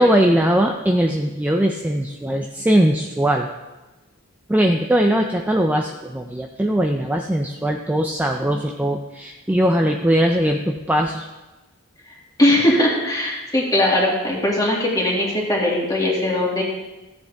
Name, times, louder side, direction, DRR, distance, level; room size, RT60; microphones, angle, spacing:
voice 1, 0.0-3.5 4.5-11.3, right 1 dB, 10° right, 2 dB, 0.5 m, -20 dB
voice 2, 12.4-16.6, left 1 dB, 15° left, -3 dB, 2.2 m, -19 dB
14.0 x 8.1 x 3.5 m, 1.1 s
head